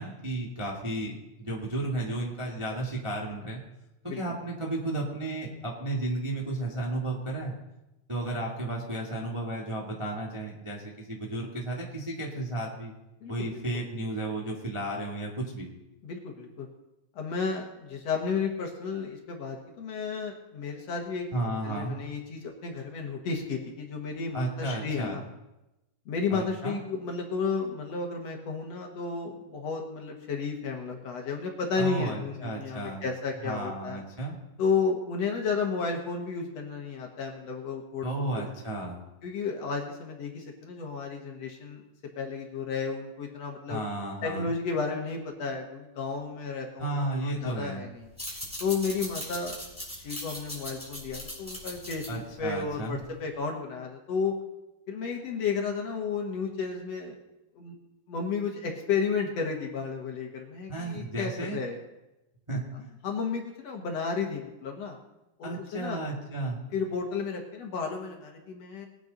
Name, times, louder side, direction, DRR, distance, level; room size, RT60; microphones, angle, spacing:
voice 1, 0.0-3.6 4.1-7.5 8.1-12.9 13.3-15.7 21.3-22.0 24.3-25.2 26.3-26.8 31.8-33.0 33.4-34.4 38.0-39.0 43.7-44.5 46.8-47.8 52.1-53.0 60.7-61.6 62.5-62.9 65.4-66.6, right 2 dB, 20° right, -3 dB, 0.7 m, -33 dB
voice 2, 13.2-13.6 16.0-16.7 17.2-25.2 26.1-34.0 34.6-38.5 39.2-41.8 42.2-43.8 44.2-48.1 48.6-49.6 49.9-54.3 54.9-57.2 57.6-57.7 58.1-61.8 63.0-65.0 65.4-66.0 66.7-68.9, left 5 dB, 55° left, 1 dB, 2.2 m, -32 dB
sound 1, 48.0-53.2, equal, ahead, 5.0 m, -40 dB
20.0 x 9.4 x 4.0 m, 0.96 s
omnidirectional pair, 4.0 m